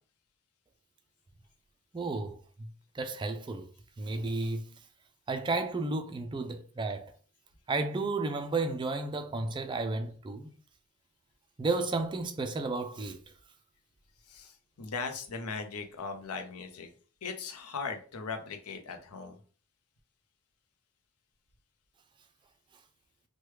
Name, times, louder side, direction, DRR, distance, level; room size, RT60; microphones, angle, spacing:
voice 1, 1.9-2.4 2.9-3.7 4.0-4.6 5.3-7.1 7.7-10.5 11.6-13.2, right 3 dB, 20° right, 0.3 m, -32 dB
voice 2, 14.3-16.9 17.2-19.4, left 4 dB, 80° left, 0.6 m, -39 dB
3.1 x 2.2 x 3.1 m
head